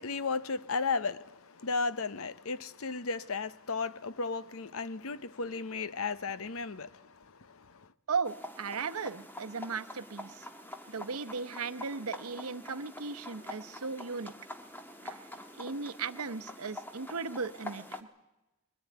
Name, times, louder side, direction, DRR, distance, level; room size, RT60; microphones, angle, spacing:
voice 1, 0.0-7.9, left 4 dB, 70° left, 0.8 m, -35 dB
voice 2, 8.1-10.5 10.9-14.3 15.0-18.1, right 5 dB, 80° right, 0.9 m, -37 dB
sound 1, 8.2-18.0, left 1 dB, 10° left, 1.3 m, -46 dB
22.0 x 15.0 x 9.3 m
head